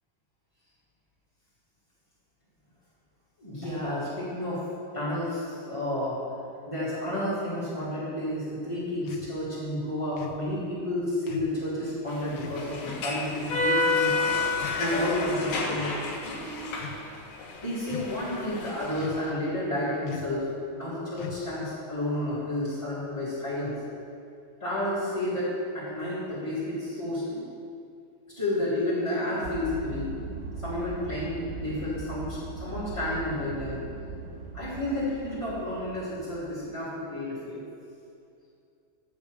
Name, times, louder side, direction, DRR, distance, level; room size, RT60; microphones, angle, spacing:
voice 1, 3.4-4.6 4.9-6.2 6.6-14.1 14.8-15.9 17.6-20.5 20.7-23.7 24.6-27.4 28.3-30.2 30.6-33.8 34.5-37.6, left 1 dB, 15° left, -12 dB, 1.0 m, -31 dB
sound 1, 9.1-9.3 10.2-10.5 11.3-11.6 12.4-12.6 13.5-13.8 14.5-15.1 15.6-16.0 16.7-17.0 17.9-18.3 19.0-19.4 20.1-20.4 21.2-21.6, left 7 dB, 85° left, 2.0 m, -41 dB
sound 2, 12.1-19.3, left 3 dB, 70° left, 1.6 m, -30 dB
sound 3, 29.4-36.7, right 3 dB, 80° right, 1.9 m, -39 dB
10.5 x 7.5 x 4.9 m, 2.5 s
omnidirectional pair, 4.8 m